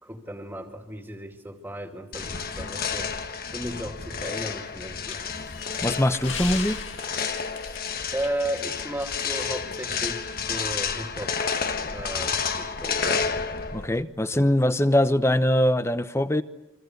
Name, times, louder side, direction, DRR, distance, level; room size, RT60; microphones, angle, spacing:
voice 1, 0.0-3.1 3.5-5.2 7.7-7.8 8.1-11.4 11.9-13.3 14.3-14.5, right 1 dB, 10° right, 4 dB, 2.6 m, -35 dB
sound 1, 2.1-14.0, left 5 dB, 45° left, 1.4 m, -30 dB
sound 2, 5.1-9.1 9.4-9.5 10.1-10.2, left 7 dB, 65° left, 2.0 m, -39 dB
voice 2, 5.8-6.8 13.7-16.4, left 1 dB, 10° left, 12 dB, 0.9 m, -22 dB
29.0 x 24.0 x 8.0 m, 0.94 s
head